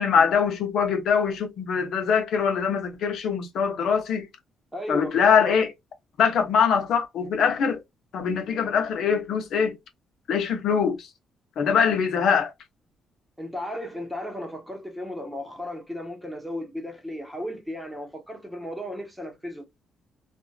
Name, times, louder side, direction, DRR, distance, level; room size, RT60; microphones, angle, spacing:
voice 1, 0.0-4.3 4.9-5.7 6.2-7.8 8.1-9.8 10.3-11.1 11.6-12.5, left 6 dB, 70° left, 0.8 m, -23 dB
voice 2, 4.7-5.6 13.4-19.7, left 1 dB, 5° right, 1.0 m, -35 dB
2.7 x 2.4 x 2.2 m
cardioid pair, 90°, 0 cm